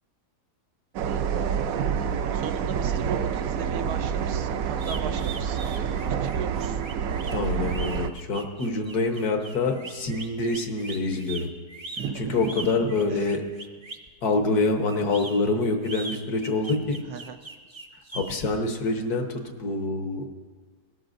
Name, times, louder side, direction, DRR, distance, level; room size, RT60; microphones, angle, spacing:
sound 1, 0.9-8.1, right 7 dB, 70° right, 1.0 m, -27 dB
voice 1, 2.3-6.8 12.0-13.3 17.0-17.4, right 7 dB, 85° right, 8 dB, 1.3 m, -36 dB
sound 2, 4.8-14.1 14.9-18.3, right 3 dB, 25° right, 0.6 m, -40 dB
voice 2, 7.3-11.5 12.3-13.4 14.2-17.0 18.1-20.2, left 3 dB, 75° left, 4 dB, 1.7 m, -26 dB
19.0 x 12.5 x 2.6 m, 1.4 s
omnidirectional pair, 1.7 m